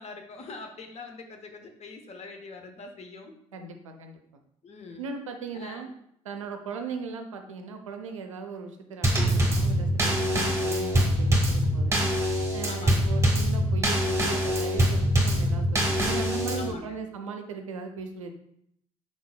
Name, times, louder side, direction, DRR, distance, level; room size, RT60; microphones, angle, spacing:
voice 1, 0.0-3.4 4.6-5.1 5.5-5.9 12.7-13.1 16.5-17.0, left 3 dB, 40° left, 5 dB, 0.8 m, -43 dB
voice 2, 3.5-4.2 5.0-5.9 6.2-12.1 12.5-18.3, right 4 dB, 90° right, 5 dB, 0.4 m, -38 dB
Drum kit / Snare drum / Bass drum, 9.0-16.7, equal, 15° right, 1.3 m, -24 dB
4.5 x 3.9 x 2.2 m, 0.72 s
hypercardioid pair, 50°, 16 cm